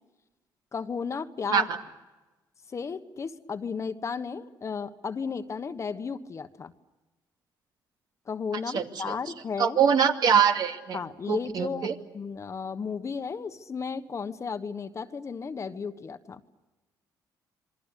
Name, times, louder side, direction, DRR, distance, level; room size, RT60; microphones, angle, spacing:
voice 1, 0.7-1.7 2.7-6.7 8.3-9.8 10.9-16.4, left 5 dB, 40° left, 10 dB, 1.3 m, -34 dB
voice 2, 8.7-9.2 9.6-11.0 11.3-11.9, right 7 dB, 60° right, 5 dB, 2.4 m, -23 dB
27.5 x 23.0 x 8.4 m, 1.1 s
cardioid pair, 95°, 8 cm